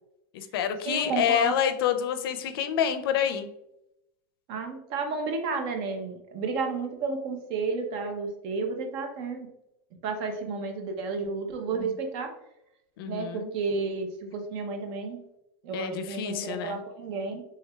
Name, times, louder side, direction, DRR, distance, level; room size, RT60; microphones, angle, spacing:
voice 1, 0.3-3.5 11.7-11.9 13.0-13.5 15.7-16.8, left 9 dB, 75° left, 9 dB, 0.4 m, -28 dB
voice 2, 0.8-1.7 4.5-9.5 10.0-12.3 13.1-15.2 15.6-17.4, right 4 dB, 45° right, 5 dB, 0.6 m, -31 dB
3.3 x 3.2 x 2.2 m, 0.85 s
supercardioid pair, 145°, 12 cm